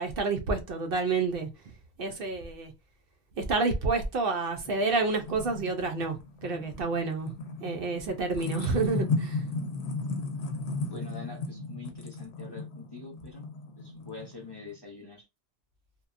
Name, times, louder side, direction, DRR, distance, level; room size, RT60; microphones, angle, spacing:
voice 1, 0.0-1.5 2.0-2.7 3.4-7.3 7.6-9.4, right 3 dB, 65° right, 0.7 m, -29 dB
sound 1, 4.6-14.7, left 3 dB, 80° left, 0.9 m, -35 dB
voice 2, 10.9-13.4 13.8-15.3, left 3 dB, 30° left, 0.6 m, -45 dB
2.8 x 2.2 x 2.4 m
omnidirectional pair, 1.1 m